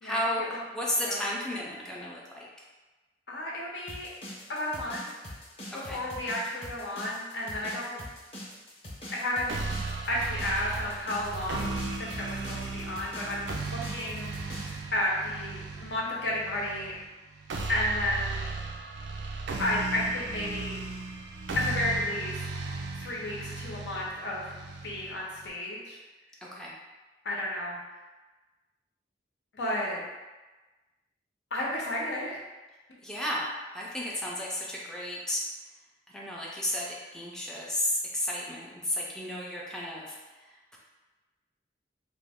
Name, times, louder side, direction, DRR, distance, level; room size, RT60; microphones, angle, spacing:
voice 1, 0.0-2.5 5.7-6.0 26.4-26.7 33.0-33.5 33.7-35.4 36.1-40.8, left 1 dB, 5° left, -5 dB, 0.4 m, -33 dB
voice 2, 3.3-4.1 4.5-5.1 5.7-8.0 9.1-9.6 10.1-16.9 17.7-18.5 19.6-20.8 21.5-22.4 22.9-24.5 24.8-26.0 27.2-27.8 29.5-30.0 31.5-32.4, left 1 dB, 75° left, -4 dB, 0.7 m, -32 dB
sound 1, 3.9-14.8, left 1 dB, 35° left, 0.8 m, -43 dB
sound 2, 9.5-25.5, right 3 dB, 80° right, 0.4 m, -36 dB
3.0 x 2.1 x 3.5 m, 1.2 s
head